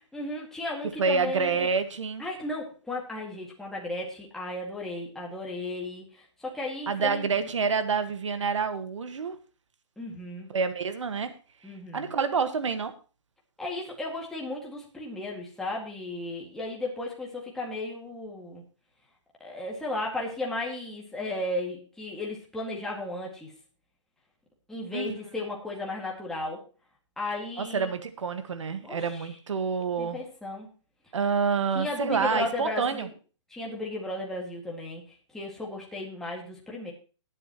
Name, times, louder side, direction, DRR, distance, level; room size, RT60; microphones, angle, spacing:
voice 1, 0.0-1.7 2.2-7.3 10.0-10.5 11.6-12.1 13.6-18.6 19.4-23.5 24.7-26.6 27.2-27.9 28.8-29.3 30.0-30.7 31.7-33.1 33.5-36.9, left 2 dB, 5° left, -3 dB, 2.1 m, -35 dB
voice 2, 1.0-2.2 6.9-9.3 10.5-11.3 11.9-12.9 24.9-25.2 27.6-30.2 31.1-33.1, right 5 dB, 80° right, 9 dB, 1.6 m, -28 dB
19.5 x 7.7 x 3.0 m, 0.36 s
hypercardioid pair, 155°, 15 cm